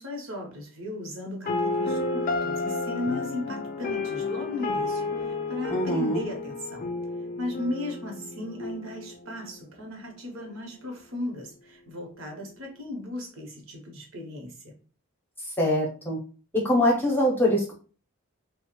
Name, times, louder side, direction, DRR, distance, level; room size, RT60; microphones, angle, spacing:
voice 1, 0.0-6.9 7.4-14.7, left 1 dB, 70° right, 0.9 m, -36 dB
sound 1, 1.5-9.5, left 3 dB, 40° left, 0.3 m, -31 dB
voice 2, 5.7-6.2 15.6-16.2 16.5-17.7, left 1 dB, 10° left, 0.7 m, -23 dB
3.1 x 2.0 x 3.0 m
head